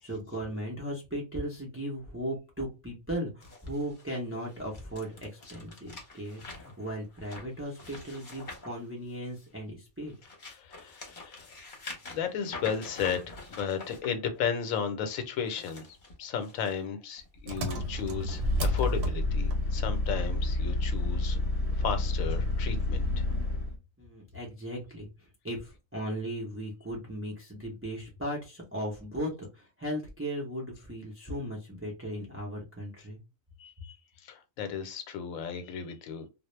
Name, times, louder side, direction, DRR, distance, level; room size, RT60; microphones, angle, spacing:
voice 1, 0.0-10.2 24.0-25.1 25.4-33.2, equal, 20° right, 0.3 m, -37 dB
sound 1, 3.4-9.5 10.0-14.1 15.3-16.7 17.2-17.4 18.1-18.2, left 3 dB, 40° left, 0.9 m, -46 dB
voice 2, 10.5-11.5 12.1-15.8 16.2-21.4 21.8-23.3 33.6-33.9 34.2-36.3, left 7 dB, 85° left, 1.0 m, -34 dB
Engine, 17.5-23.8, left 2 dB, 60° right, 0.8 m, -29 dB
2.3 x 2.0 x 3.0 m
omnidirectional pair, 1.4 m